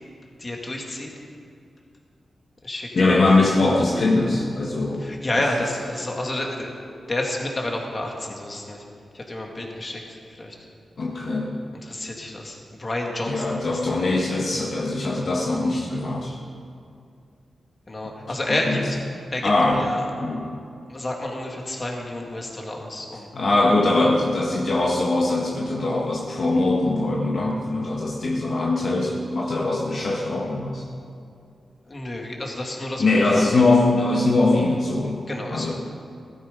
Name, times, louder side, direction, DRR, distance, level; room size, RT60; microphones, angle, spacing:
voice 1, 0.4-1.1 2.6-3.2 5.0-6.7 7.1-8.8 9.1-10.6 11.8-13.8 17.9-19.0 19.3-20.1 20.9-23.3 31.9-33.6 35.3-35.7, left 1 dB, 30° left, 0 dB, 2.5 m, -30 dB
voice 2, 2.9-5.1 11.0-11.5 13.3-16.4 18.5-18.9 19.4-19.9 20.2-20.5 23.3-30.8 33.0-35.2 35.5-35.7, left 2 dB, 55° left, -2 dB, 1.6 m, -21 dB
16.5 x 14.0 x 5.4 m, 2.4 s
wide cardioid pair, 90°, 0 cm